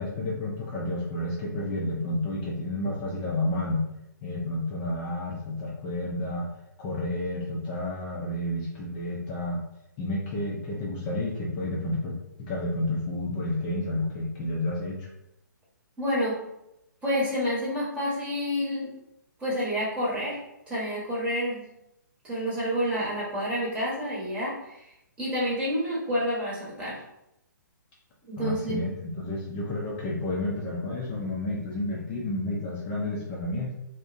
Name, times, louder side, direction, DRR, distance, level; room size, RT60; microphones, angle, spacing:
voice 1, 0.0-3.8 4.2-6.5 6.8-9.6 10.0-15.1 28.4-33.7, left 1 dB, 30° left, -4 dB, 0.4 m, -30 dB
voice 2, 16.0-16.4 17.0-18.9 19.4-20.4 20.7-21.6 22.2-24.9 25.2-27.0 28.3-28.8, equal, 10° right, -7 dB, 0.9 m, -29 dB
2.5 x 2.0 x 2.4 m, 0.85 s
figure-of-eight pair, 130°, 11 cm